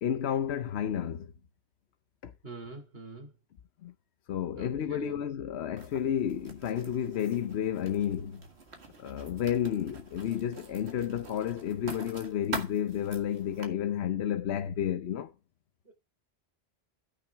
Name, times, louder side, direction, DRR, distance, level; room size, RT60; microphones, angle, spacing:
voice 1, 0.0-1.3 2.2-2.3 3.8-3.9 4.3-8.4 9.0-15.3, left 9 dB, 85° left, 1.0 m, -31 dB
voice 2, 2.4-3.3 4.5-5.2 15.8-15.9, right 2 dB, 65° right, 3.2 m, -43 dB
Writing, 5.8-13.7, right 3 dB, 85° right, 2.1 m, -45 dB
14.0 x 6.1 x 3.5 m
omnidirectional pair, 1.1 m